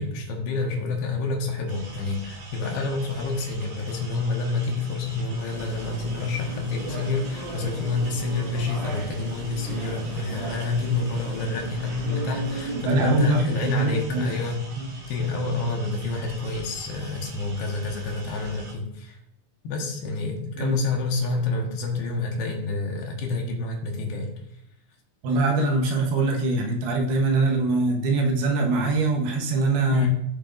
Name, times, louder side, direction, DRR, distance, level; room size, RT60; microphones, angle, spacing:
voice 1, 0.0-14.6 15.1-19.2 19.6-24.3 29.9-30.1, left 3 dB, 75° left, 1 dB, 3.2 m, -28 dB
sound 1, 1.7-18.7, right 2 dB, 55° right, 3.0 m, -44 dB
sound 2, 5.4-12.8, right 2 dB, 35° right, 2.2 m, -36 dB
voice 2, 12.8-14.3 14.8-14.9 20.6-20.8 25.2-30.1, right 3 dB, 75° right, 1 dB, 2.9 m, -23 dB
15.0 x 6.8 x 2.6 m, 0.78 s
omnidirectional pair, 4.8 m